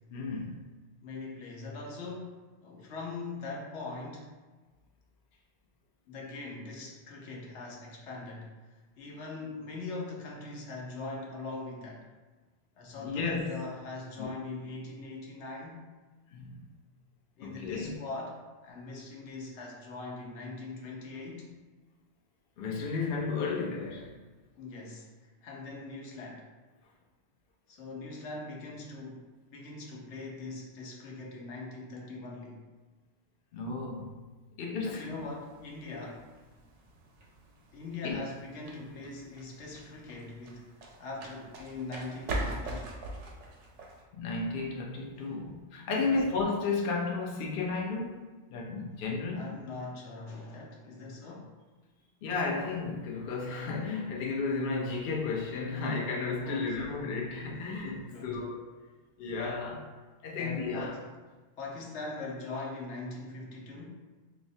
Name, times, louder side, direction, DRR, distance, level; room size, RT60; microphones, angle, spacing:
voice 1, 0.1-0.6 13.0-13.6 14.2-14.3 16.3-16.6 17.4-18.0 22.6-24.2 33.5-34.3 34.6-35.2 38.0-38.2 44.1-48.2 48.5-49.5 52.2-58.7 59.2-59.9 60.2-61.0, left 4 dB, 60° left, -1 dB, 0.7 m, -33 dB
voice 2, 1.0-4.3 6.1-12.1 12.8-15.9 17.4-21.6 24.6-26.5 27.7-32.6 34.8-36.3 37.7-40.7 41.0-42.9 45.2-45.5 46.0-46.1 49.3-51.6 56.4-56.9 57.5-58.4 60.4-61.1 61.6-64.0, left 3 dB, 80° left, -2 dB, 1.0 m, -42 dB
sound 1, 34.8-44.0, right 1 dB, 90° right, 1.0 m, -42 dB
4.7 x 2.0 x 2.6 m, 1.3 s
omnidirectional pair, 1.2 m